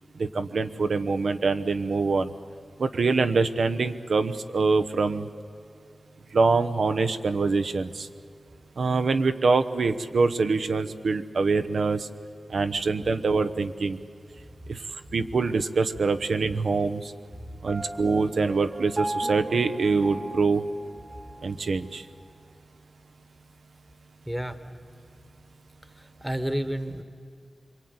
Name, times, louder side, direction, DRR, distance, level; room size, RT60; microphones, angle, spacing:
voice 1, 0.2-2.3 2.8-5.3 6.3-8.1 8.8-12.1 12.5-14.0 14.7-14.8 15.1-17.1 17.6-20.6 21.4-22.0, right 4 dB, 70° right, 8 dB, 1.0 m, -24 dB
Piano, 17.7-21.5, right 1 dB, 30° right, 1.0 m, -36 dB
voice 2, 24.3-24.6 26.0-27.0, right 1 dB, 5° right, 10 dB, 1.3 m, -30 dB
26.5 x 23.0 x 9.7 m, 2.5 s
wide cardioid pair, 125°, 0 cm